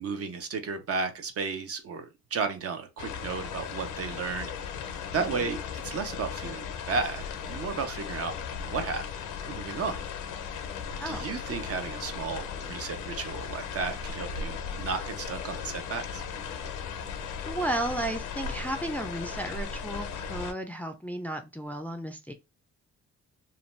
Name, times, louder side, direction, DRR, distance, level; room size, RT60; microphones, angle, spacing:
voice 1, 0.0-4.5 5.1-8.3 8.6-9.0 9.4-10.0 11.1-16.2, right 5 dB, 50° right, 0.7 m, -33 dB
sound 1, 3.0-20.5, left 6 dB, 85° left, 0.6 m, -37 dB
voice 2, 5.2-5.5 11.0-11.3 17.4-22.3, right 1 dB, 5° left, 0.4 m, -34 dB
2.6 x 2.2 x 3.1 m
cardioid pair, 90°, 30 cm